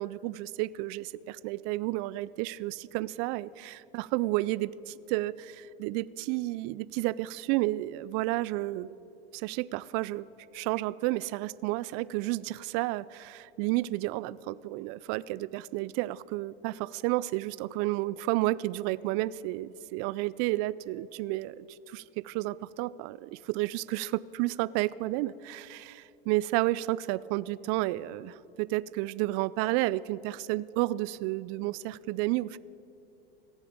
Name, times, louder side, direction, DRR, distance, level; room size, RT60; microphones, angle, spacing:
voice 1, 0.0-9.0 9.3-10.3 10.5-32.6, right 18 dB, 50° right, 20 dB, 0.4 m, -31 dB
16.5 x 7.2 x 8.7 m, 3.0 s
hypercardioid pair, 105°, 30 cm